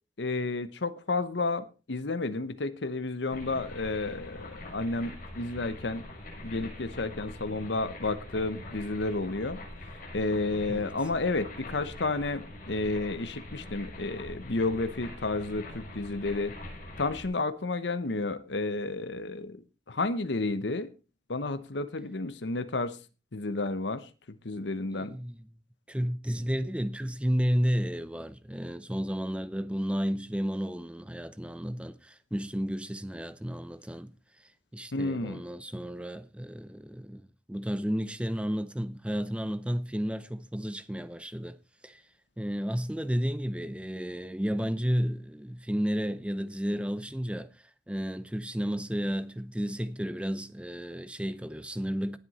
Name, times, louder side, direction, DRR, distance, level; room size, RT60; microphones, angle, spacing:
voice 1, 0.2-6.1 6.4-9.6 10.1-16.5 17.0-19.6 19.9-20.9 21.3-23.0 23.3-24.0 24.4-25.1 34.9-35.4, left 3 dB, 80° left, 0.9 m, -31 dB
sound 1, 3.3-17.3, left 1 dB, 50° left, 6.7 m, -44 dB
voice 2, 24.9-25.5 25.9-34.1 34.7-41.6 41.8-42.0 42.4-47.5 47.9-52.2, equal, 5° right, 0.7 m, -32 dB
18.0 x 8.0 x 4.1 m
head